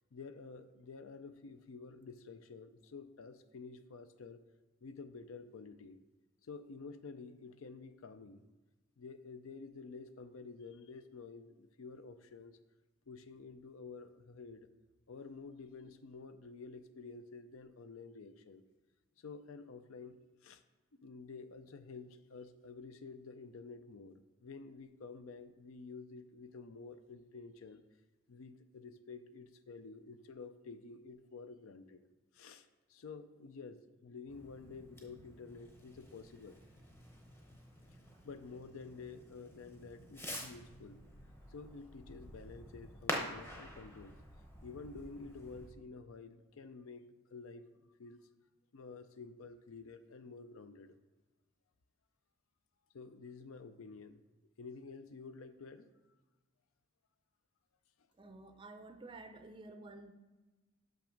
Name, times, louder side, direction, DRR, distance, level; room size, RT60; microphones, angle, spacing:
voice 1, 0.1-4.4 4.8-6.0 6.4-8.4 9.0-12.6 13.1-14.7 15.1-18.6 19.2-20.6 21.0-27.8 28.3-32.0 32.3-36.6 38.2-41.0 41.5-44.2 44.6-48.2 48.7-50.9 52.9-54.2 54.6-55.9, left 4 dB, 75° left, 11 dB, 0.5 m, -50 dB
Fireworks, 34.3-45.7, equal, 10° left, 0.8 m, -47 dB
voice 2, 58.2-60.1, right 2 dB, 25° right, 8 dB, 0.4 m, -51 dB
6.1 x 5.8 x 5.1 m, 1.2 s
head